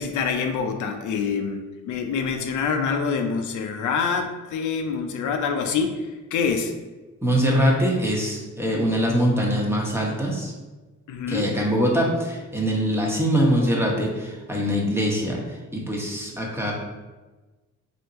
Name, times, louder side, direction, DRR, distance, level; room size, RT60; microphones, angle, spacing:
voice 1, 0.0-6.7 11.1-11.6, left 5 dB, 75° left, 5 dB, 0.5 m, -26 dB
voice 2, 7.2-10.5 11.3-15.4 15.7-16.7, equal, 10° right, -2 dB, 1.0 m, -23 dB
3.4 x 2.7 x 4.2 m, 1.2 s
cardioid pair, 90°, 30 cm